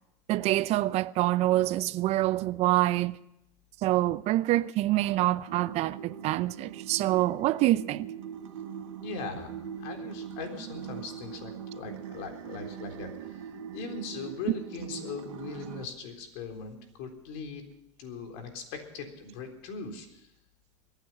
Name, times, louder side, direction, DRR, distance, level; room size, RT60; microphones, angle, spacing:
voice 1, 0.3-3.2 3.8-8.1 14.5-14.6, right 16 dB, 45° right, 0.6 m, -26 dB
sound 1, 5.5-15.9, right 8 dB, 85° right, 1.3 m, -41 dB
voice 2, 8.9-17.6 18.0-20.3, left 4 dB, 65° left, 3.8 m, -40 dB
23.0 x 9.2 x 5.7 m
supercardioid pair, 115°, 15 cm